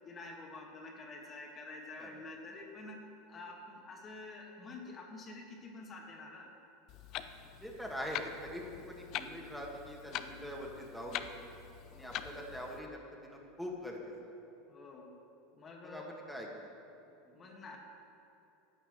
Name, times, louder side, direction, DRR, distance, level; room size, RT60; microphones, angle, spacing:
voice 1, 0.1-3.0 3.3-6.5 11.9-12.3 14.7-15.1 15.5-16.1 17.3-17.8, left 3 dB, 30° left, 0 dB, 1.8 m, -48 dB
Clock, 6.9-12.8, left 10 dB, 50° left, 0.6 m, -44 dB
voice 2, 7.6-11.3 11.9-14.1 15.8-16.5, equal, ahead, -2 dB, 1.9 m, -43 dB
11.5 x 6.7 x 8.1 m, 2.9 s
hypercardioid pair, 90°, 0 cm